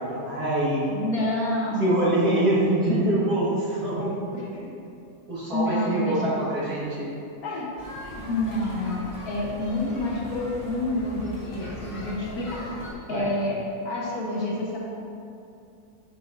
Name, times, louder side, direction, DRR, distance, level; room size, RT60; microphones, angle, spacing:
voice 1, 0.0-0.9 1.8-4.2 5.3-7.1 13.1-13.3, right 1 dB, 65° right, -8 dB, 2.3 m, -24 dB
voice 2, 0.9-1.9 4.3-4.4 5.5-6.3 7.4-7.7 8.0-12.6 13.1-13.6 13.8-14.8, left 2 dB, 60° left, -4 dB, 1.6 m, -28 dB
sound 1, 7.8-12.9, left 1 dB, 20° left, 1.6 m, -40 dB
9.8 x 5.7 x 2.6 m, 2.6 s
omnidirectional pair, 1.8 m